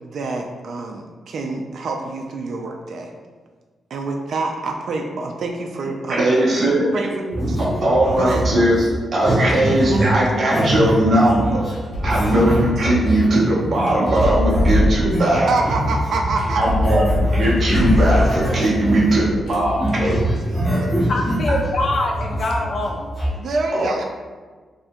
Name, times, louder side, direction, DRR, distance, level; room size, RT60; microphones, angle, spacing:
voice 1, 0.0-3.1 3.9-6.3 6.9-7.8 8.2-8.4 9.9-10.2 15.0-15.2 15.5-16.6 20.0-20.1 20.5-21.3 23.3-24.0, right 3 dB, 65° right, 2 dB, 0.3 m, -26 dB
voice 2, 6.1-6.9 7.6-8.8 9.1-11.6 12.0-15.5 16.5-20.2 23.7-23.9, right 1 dB, 40° right, -6 dB, 0.7 m, -19 dB
sound 1, 7.3-19.4 19.6-23.3, right 1 dB, 5° left, 1.2 m, -24 dB
sound 2, 9.5-9.8 11.7-12.6 14.1-15.4 16.4-18.6 19.3-20.4, left 1 dB, 80° left, 0.8 m, -22 dB
voice 3, 21.1-23.1, left 2 dB, 50° left, 1 dB, 0.4 m, -23 dB
2.7 x 2.5 x 3.5 m, 1.4 s
wide cardioid pair, 130°, 0 cm